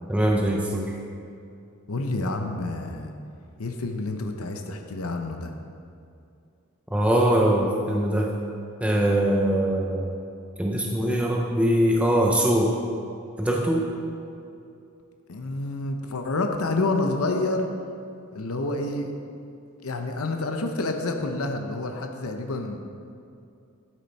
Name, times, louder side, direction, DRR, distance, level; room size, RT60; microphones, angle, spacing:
voice 1, 0.1-0.9 6.9-8.3 8.8-10.1 10.6-12.7 13.4-13.9, right 1 dB, 5° right, -1 dB, 0.6 m, -22 dB
voice 2, 1.9-3.1 3.6-5.5 15.3-17.7 18.3-19.2 19.8-22.8, left 2 dB, 90° left, 4 dB, 0.8 m, -28 dB
12.5 x 7.5 x 4.2 m, 2.5 s
head